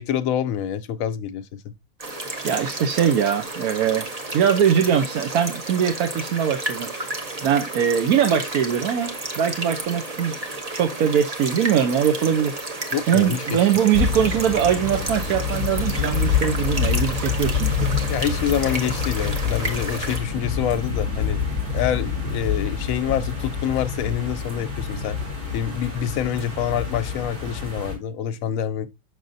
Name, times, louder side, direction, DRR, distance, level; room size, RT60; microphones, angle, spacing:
voice 1, 0.0-1.7 12.9-13.7 18.1-21.4 21.7-25.2 25.5-28.9, left 9 dB, 70° left, 0.9 m, -26 dB
sound 1, 2.0-20.2, right 2 dB, 30° right, 1.0 m, -32 dB
voice 2, 2.4-4.1 4.3-7.1 7.4-10.3 10.7-12.8 13.1-17.9, right 8 dB, 80° right, 1.2 m, -22 dB
sound 2, 13.9-27.9, left 6 dB, 60° right, 2.5 m, -27 dB
6.3 x 6.2 x 2.6 m
omnidirectional pair, 1.5 m